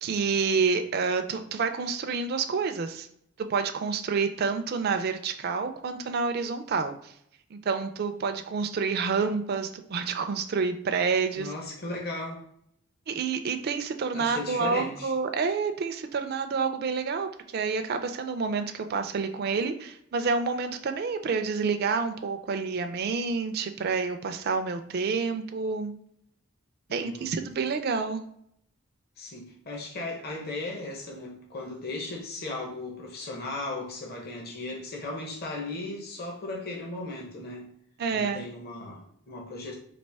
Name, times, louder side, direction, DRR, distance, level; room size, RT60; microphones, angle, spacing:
voice 1, 0.0-3.1 3.5-7.1 7.5-11.5 13.1-25.9 26.9-28.2 38.0-38.4, right 5 dB, 45° right, 7 dB, 0.3 m, -28 dB
voice 2, 11.4-12.4 14.1-15.1 26.9-27.3 29.2-37.7 38.1-39.8, left 2 dB, 45° left, 0 dB, 0.8 m, -36 dB
4.2 x 2.9 x 3.3 m, 0.71 s
head